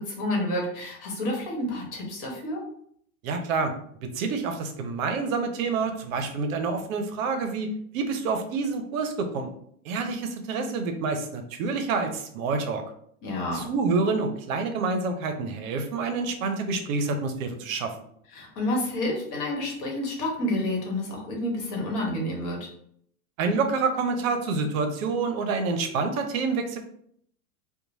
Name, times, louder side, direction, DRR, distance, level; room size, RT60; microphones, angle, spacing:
voice 1, 0.1-2.6 13.2-13.7 18.3-22.6, left 1 dB, 45° left, -1 dB, 1.2 m, -29 dB
voice 2, 3.2-3.7 4.0-9.5 9.8-12.8 13.5-17.9 23.4-26.8, right 4 dB, 65° right, 6 dB, 0.6 m, -27 dB
2.9 x 2.1 x 2.6 m, 0.66 s
hypercardioid pair, 100°, 45 cm